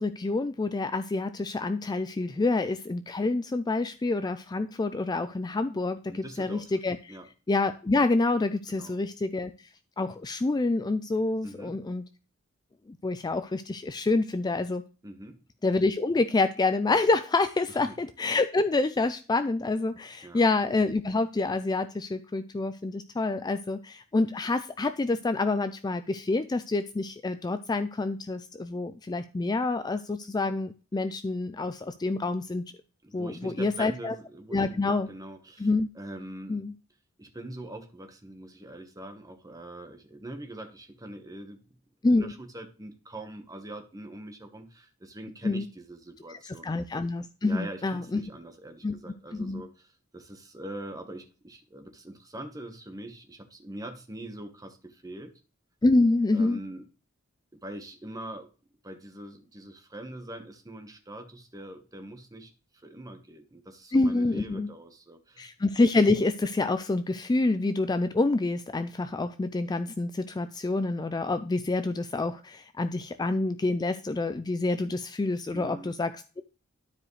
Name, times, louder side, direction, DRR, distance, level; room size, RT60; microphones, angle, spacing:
voice 1, 0.0-7.2 7.5-9.5 10.0-12.0 12.9-14.8 15.6-32.6 33.1-34.1 34.5-35.1 35.6-35.9 36.5-36.7 42.0-42.3 45.4-45.7 46.3-48.2 48.8-48.9 49.3-49.6 55.8-56.6 63.9-64.7 65.4-76.4, left 3 dB, 20° left, 11 dB, 0.4 m, -27 dB
voice 2, 6.1-6.7 7.1-7.3 8.7-9.0 11.4-11.8 15.0-15.4 17.7-18.0 20.2-20.4 33.0-35.7 35.9-36.6 37.2-41.7 42.1-46.7 47.4-55.3 56.3-56.9 57.5-58.5 58.8-62.5 62.8-65.5 75.5-75.9, right 1 dB, 15° right, 6 dB, 1.2 m, -43 dB
12.0 x 4.9 x 3.2 m, 0.36 s
head